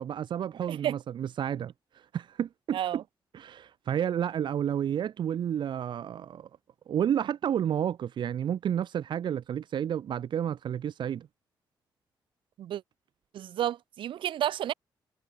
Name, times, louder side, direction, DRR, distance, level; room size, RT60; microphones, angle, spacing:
voice 1, 0.0-1.7 2.1-2.8 3.3-6.5 6.9-11.3, right 9 dB, 70° right, 6.2 m, -31 dB
voice 2, 0.7-1.0 2.7-3.0 12.6-12.8 13.3-14.7, right 11 dB, 90° right, 7.9 m, -31 dB
cardioid pair, 125°, 8 cm